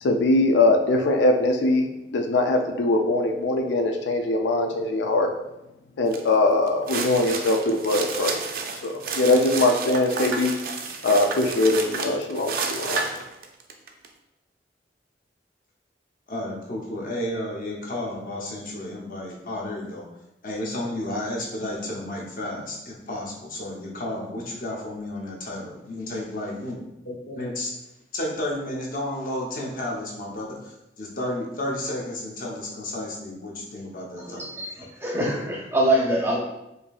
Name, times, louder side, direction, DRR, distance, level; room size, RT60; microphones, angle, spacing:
voice 1, 0.0-5.3 6.0-8.4 8.8-10.5 11.0-13.0, left 2 dB, 85° left, 4 dB, 0.4 m, -22 dB
sound 1, 6.1-6.3 6.7-14.1, right 4 dB, 55° right, 0.4 m, -31 dB
voice 2, 16.3-20.1 20.4-27.7 28.1-34.4, left 1 dB, 50° left, -2 dB, 0.8 m, -32 dB
voice 3, 34.2-36.4, right 1 dB, 15° right, -2 dB, 0.6 m, -24 dB
5.0 x 2.6 x 2.4 m, 0.91 s
head